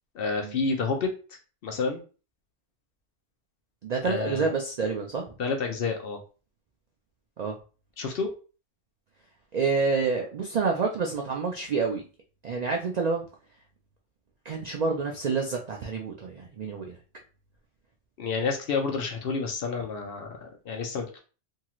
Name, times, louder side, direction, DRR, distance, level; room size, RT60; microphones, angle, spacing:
voice 1, 0.1-1.1 1.6-2.0 4.0-4.5 5.4-6.2 8.0-8.3 18.2-21.2, left 4 dB, 60° left, 3 dB, 0.6 m, -29 dB
voice 2, 3.8-5.3 7.4-7.5 9.5-12.0 12.4-13.2 14.4-17.0, right 4 dB, 80° right, 1 dB, 0.3 m, -28 dB
2.8 x 2.3 x 2.9 m, 0.36 s
omnidirectional pair, 1.3 m